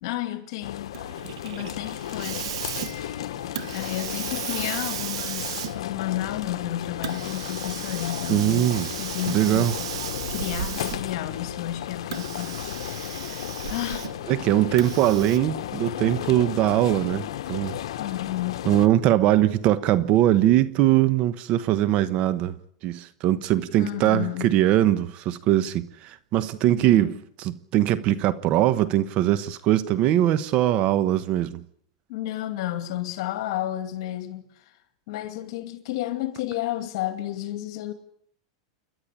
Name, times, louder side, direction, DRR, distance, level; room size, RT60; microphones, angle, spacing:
voice 1, 0.0-1.0 1.4-3.0 3.7-8.7 9.0-9.7 10.3-14.1 18.0-18.7 23.8-24.6 26.7-27.1 32.1-34.7 35.1-37.9, left 14 dB, 65° left, 2.4 m, -32 dB
sound 1, 0.6-18.9, left 12 dB, 80° left, 1.0 m, -34 dB
Hiss, 0.9-11.3 12.0-14.3 14.8-15.4, right 11 dB, 80° right, 1.2 m, -35 dB
voice 2, 8.3-8.9 9.3-9.7 14.3-17.8 18.7-22.6 22.8-31.6, right 13 dB, 40° right, 1.1 m, -21 dB
29.0 x 12.0 x 10.0 m
supercardioid pair, 140°, 3 cm